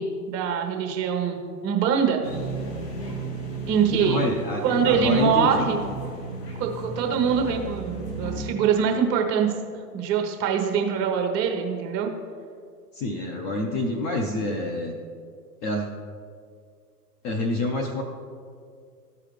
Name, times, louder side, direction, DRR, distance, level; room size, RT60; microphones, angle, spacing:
voice 1, 0.0-2.2 3.7-4.2 4.6-5.8 6.6-9.5 9.9-12.1, right 7 dB, 30° right, 3 dB, 1.1 m, -24 dB
sound 1, 2.2-8.5, right 3 dB, 75° left, 1.7 m, -34 dB
voice 2, 3.9-5.7 12.9-14.9 15.6-15.9 17.2-18.0, left 1 dB, 20° left, 2 dB, 0.5 m, -27 dB
13.5 x 4.9 x 3.2 m, 2.2 s
hypercardioid pair, 110°, 48 cm